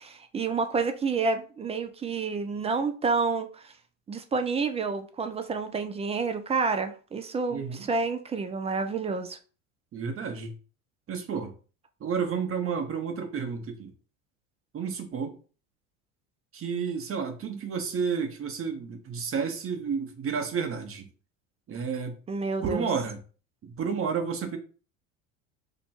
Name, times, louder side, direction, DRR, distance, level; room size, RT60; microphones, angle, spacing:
voice 1, 0.0-3.7 4.1-9.4 22.3-22.9, right 4 dB, 15° right, 0.3 m, -29 dB
voice 2, 7.5-7.9 9.9-10.5 11.1-11.5 12.0-13.9 14.7-15.4 16.5-21.1 21.7-22.2 22.6-23.2 23.6-24.6, right 6 dB, 35° right, 0.9 m, -31 dB
2.9 x 2.2 x 4.2 m
hypercardioid pair, 80°, 40 cm